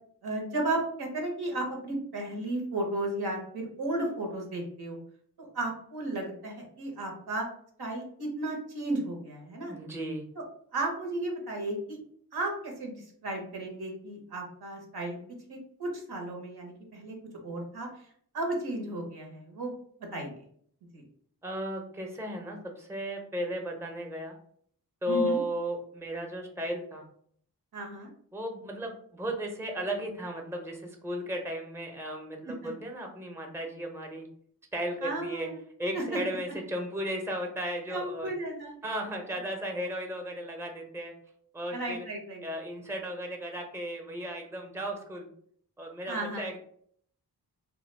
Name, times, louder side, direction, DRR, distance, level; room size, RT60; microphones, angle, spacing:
voice 1, 0.2-5.0 5.4-7.5 7.8-9.7 10.4-10.5 10.7-12.0 12.3-15.2 15.5-17.1 17.4-17.9 18.3-19.7 20.1-20.3 20.9-21.0 25.1-25.4 27.7-28.1 32.4-32.7 35.0-35.6 35.9-36.2 37.9-38.8 41.7-42.4 46.1-46.4, right 2 dB, 70° right, 1 dB, 0.9 m, -34 dB
voice 2, 9.7-10.3 21.4-24.4 25.0-27.1 28.3-34.3 34.7-35.5 35.8-38.3 38.8-41.1 41.5-42.1 42.4-45.3 45.8-46.6, equal, 5° right, 2 dB, 0.6 m, -35 dB
2.2 x 2.2 x 3.2 m, 0.63 s
cardioid pair, 40°, 39 cm